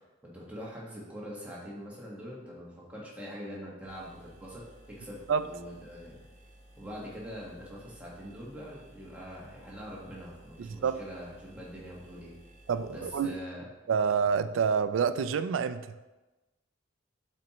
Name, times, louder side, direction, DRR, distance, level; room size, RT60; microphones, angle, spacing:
voice 1, 0.2-6.2 6.8-12.3 12.9-13.6, equal, 5° right, -6 dB, 1.3 m, -43 dB
sound 1, 3.9-13.3, right 1 dB, 35° right, 0.7 m, -56 dB
voice 2, 10.6-11.0 12.7-13.4 13.9-15.9, right 6 dB, 85° right, 12 dB, 0.3 m, -28 dB
7.6 x 4.2 x 3.0 m, 1.1 s
head